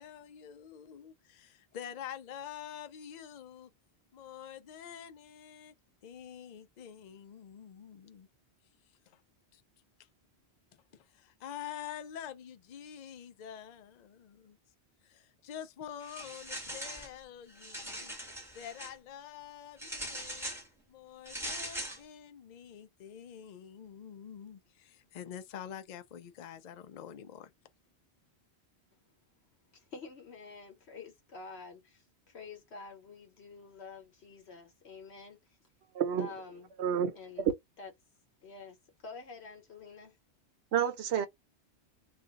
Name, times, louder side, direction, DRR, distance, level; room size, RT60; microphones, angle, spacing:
voice 1, 0.0-3.7 4.1-5.7 6.0-8.3 9.1-9.2 9.5-9.6 10.9-14.6 15.0-18.1 18.5-20.5 20.9-27.5, left 9 dB, 55° left, 0.5 m, -47 dB
sound 1, 16.0-17.1 17.5-18.9 19.8-20.7 21.3-22.0, equal, ahead, 1.2 m, -41 dB
voice 2, 29.7-35.6 36.2-36.7 37.1-37.5 37.8-37.9 38.4-40.2, left 4 dB, 70° left, 1.1 m, -48 dB
voice 3, 35.9-36.3 36.8-37.5 40.7-41.3, right 8 dB, 75° right, 0.9 m, -29 dB
2.5 x 2.3 x 3.9 m
omnidirectional pair, 1.1 m